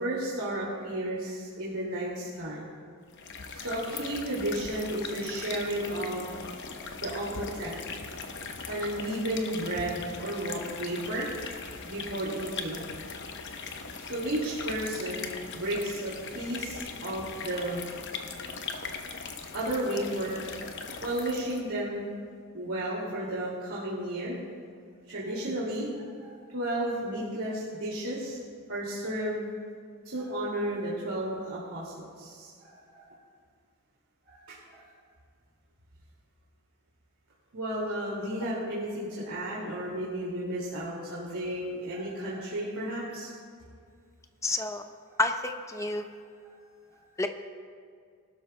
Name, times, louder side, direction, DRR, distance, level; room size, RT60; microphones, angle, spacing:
voice 1, 0.0-2.6 3.5-6.3 7.0-7.7 8.7-11.3 11.9-12.8 14.0-17.8 19.5-20.4 21.0-22.1 22.5-24.4 25.1-28.4 28.7-29.5 30.1-33.1 34.3-34.8 37.5-43.3, right 1 dB, 75° right, -7 dB, 2.3 m, -33 dB
sound 1, 3.1-21.7, left 4 dB, 55° left, 0.8 m, -40 dB
voice 2, 44.4-44.8 45.2-46.1 47.2-47.3, left 2 dB, 15° left, 6 dB, 0.6 m, -29 dB
21.0 x 12.0 x 2.2 m, 2.1 s
head